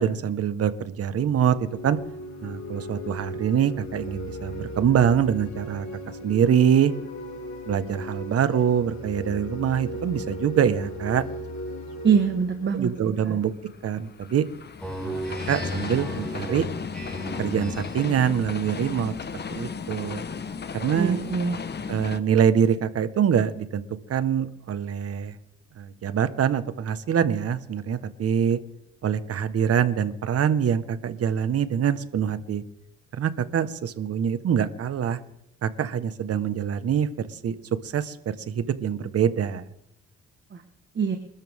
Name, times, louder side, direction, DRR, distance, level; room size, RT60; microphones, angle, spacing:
voice 1, 0.0-2.0 2.4-5.9 6.2-6.9 7.7-11.2 12.7-13.5 13.8-14.4 15.0-15.2 15.5-16.7 17.4-20.2 20.7-21.2 21.9-23.8 24.1-25.3 25.8-28.6 29.0-32.6 33.2-35.2 35.6-37.6 37.8-39.7, right 8 dB, 55° right, 12 dB, 1.5 m, -24 dB
sound 1, 1.2-13.9, equal, 75° left, 6.2 m, -37 dB
voice 2, 12.0-12.9 13.3-13.4 20.9-21.6 40.5-40.6 40.9-41.2, right 6 dB, 40° right, 6 dB, 1.6 m, -23 dB
sound 2, 12.9-22.2, left 6 dB, 35° left, 1.3 m, -35 dB
Speech synthesizer, 14.8-18.1, equal, 5° left, 7.0 m, -34 dB
27.5 x 13.0 x 3.7 m, 0.81 s
cardioid pair, 95°, 29 cm